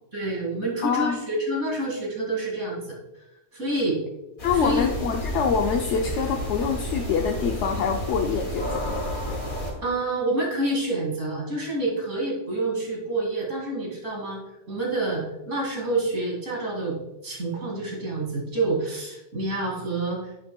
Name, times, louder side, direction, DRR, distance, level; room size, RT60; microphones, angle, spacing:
voice 1, 0.1-2.9 3.5-4.0 4.6-4.9 9.8-14.4 14.7-17.0 17.2-20.2, right 2 dB, 80° right, -3 dB, 2.8 m, -27 dB
voice 2, 0.8-1.2 4.4-9.0, left 6 dB, 75° left, 3 dB, 1.0 m, -25 dB
sound 1, 4.4-9.7, left 1 dB, 55° left, 2.6 m, -31 dB
9.6 x 8.9 x 2.3 m, 0.92 s
omnidirectional pair, 1.2 m